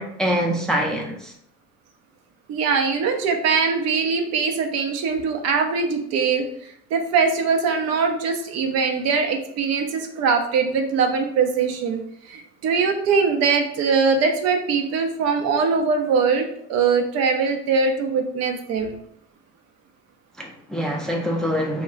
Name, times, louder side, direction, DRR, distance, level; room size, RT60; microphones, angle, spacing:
voice 1, 0.0-1.3 20.4-21.8, equal, ahead, 0 dB, 0.5 m, -25 dB
voice 2, 2.5-6.4 6.9-12.0 12.3-18.9, right 5 dB, 50° right, 5 dB, 0.5 m, -22 dB
2.2 x 2.1 x 3.7 m, 0.69 s
hypercardioid pair, 70°, 33 cm